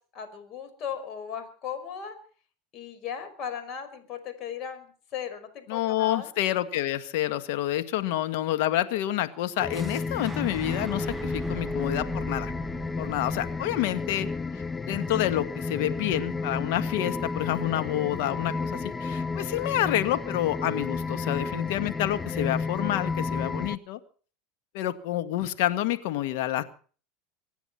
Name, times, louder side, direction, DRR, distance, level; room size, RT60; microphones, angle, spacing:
voice 1, 0.1-2.1 2.7-6.3, left 8 dB, 45° left, 8 dB, 5.5 m, -37 dB
voice 2, 5.7-12.5 13.0-14.3 14.9-24.0 24.7-26.6, left 13 dB, 70° left, 10 dB, 1.8 m, -28 dB
sound 1, 9.6-23.8, left 4 dB, 20° left, 0.7 m, -32 dB
Fire / Explosion, 9.7-15.6, right 4 dB, 15° right, 1.1 m, -41 dB
25.0 x 9.7 x 5.8 m, 0.42 s
hypercardioid pair, 95°, 0 cm